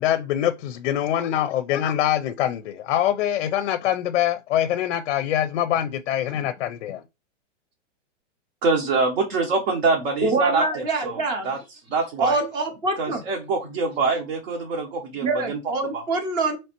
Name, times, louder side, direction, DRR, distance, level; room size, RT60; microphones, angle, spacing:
voice 1, 0.0-7.0, left 11 dB, 60° left, 0.5 m, -24 dB
voice 2, 8.6-11.6 11.9-12.4 13.0-15.6 15.9-16.0, right 4 dB, 55° right, 0.9 m, -25 dB
voice 3, 10.2-11.5 12.2-13.2 15.2-16.6, right 2 dB, 15° right, 0.4 m, -25 dB
4.0 x 3.1 x 2.9 m
hypercardioid pair, 145°, 37 cm